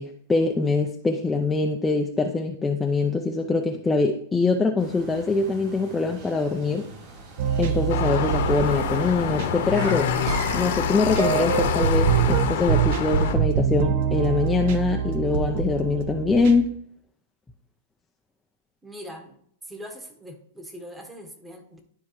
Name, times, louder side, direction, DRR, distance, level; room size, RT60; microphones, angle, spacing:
voice 1, 0.0-6.9 7.6-10.1 10.5-16.8, left 3 dB, 10° left, 2 dB, 0.5 m, -23 dB
sound 1, 4.8-10.6, right 3 dB, 45° right, 3.6 m, -42 dB
sound 2, 7.4-16.6, right 7 dB, 60° right, 0.8 m, -25 dB
sound 3, 7.9-13.3, left 8 dB, 70° left, 1.2 m, -26 dB
voice 2, 18.8-19.4 19.6-21.8, equal, 10° right, 4 dB, 1.3 m, -41 dB
12.0 x 4.6 x 3.1 m, 0.65 s
hypercardioid pair, 135°, 0 cm